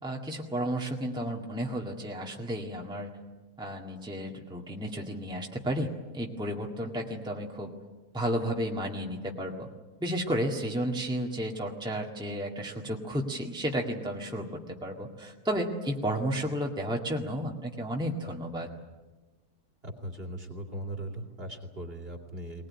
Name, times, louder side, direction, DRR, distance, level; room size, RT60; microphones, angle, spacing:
voice 1, 0.0-3.2 3.6-7.7 8.1-9.7 10.0-18.7, equal, 5° right, 0 dB, 1.8 m, -32 dB
voice 2, 19.8-22.7, right 1 dB, 40° right, 2 dB, 3.0 m, -39 dB
20.5 x 20.5 x 9.7 m, 1.2 s
omnidirectional pair, 1.6 m